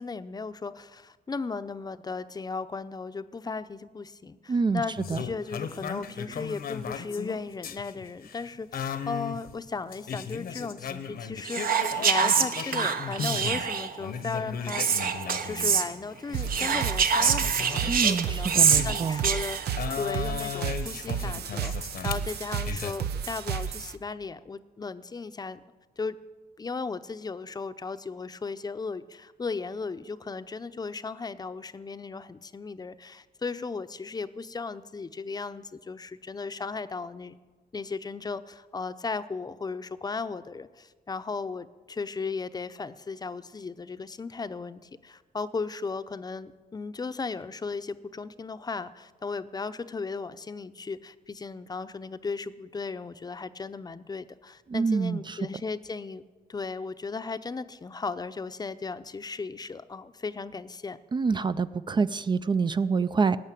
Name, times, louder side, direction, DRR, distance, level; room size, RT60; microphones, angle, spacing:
voice 1, 0.0-15.0 15.4-18.5 18.8-19.6 20.0-25.6 26.0-26.2 26.6-37.4 37.7-56.2 56.5-61.0, left 4 dB, 25° left, 12 dB, 0.6 m, -36 dB
voice 2, 4.5-4.8 5.1-5.2 17.9-19.2 54.7-55.4 61.1-63.4, right 5 dB, 30° right, 13 dB, 0.4 m, -26 dB
sound 1, 5.0-13.7 14.0-19.3 19.8-22.9, left 7 dB, 70° left, 1.0 m, -37 dB
Whispering, 11.4-14.0 14.7-15.9 16.5-19.8, right 6 dB, 65° right, 1.0 m, -25 dB
sound 2, 16.3-23.9, right 8 dB, 85° right, 0.8 m, -33 dB
19.0 x 6.5 x 9.1 m, 1.3 s
cardioid pair, 115°, 16 cm